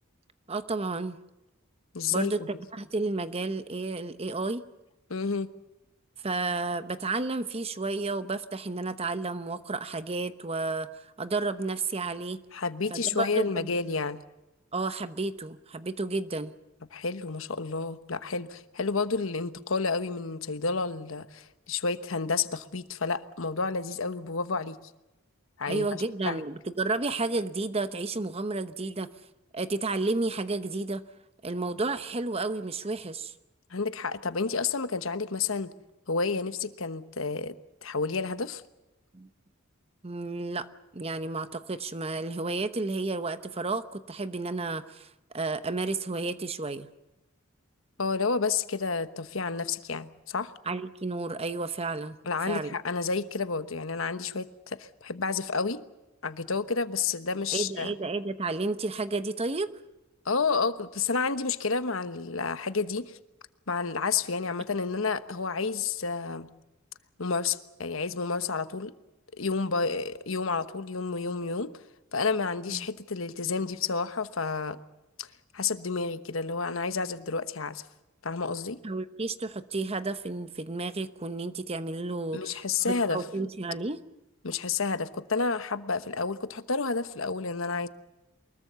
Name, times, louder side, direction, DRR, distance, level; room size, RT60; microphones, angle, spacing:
voice 1, 0.5-1.2 2.1-4.6 6.2-10.9 11.2-12.4 12.9-13.7 14.7-16.5 25.7-29.1 29.5-31.0 31.4-33.3 39.1-39.3 40.0-40.7 40.9-45.1 45.3-46.9 50.6-52.2 52.5-52.7 57.5-59.7 72.7-72.9 78.8-84.0, right 3 dB, 30° right, 12 dB, 0.9 m, -31 dB
voice 2, 1.9-2.5 5.1-5.5 12.5-14.2 16.9-24.8 25.6-25.9 26.2-26.4 33.7-35.7 36.1-37.5 37.8-38.6 48.0-50.5 52.2-55.8 56.2-57.9 60.2-63.2 63.7-66.5 67.2-68.9 69.4-71.7 72.1-74.8 75.2-75.3 75.5-77.8 78.2-78.8 82.3-83.2 84.4-87.9, left 4 dB, 65° left, 12 dB, 1.1 m, -30 dB
24.0 x 21.5 x 6.9 m, 0.97 s
head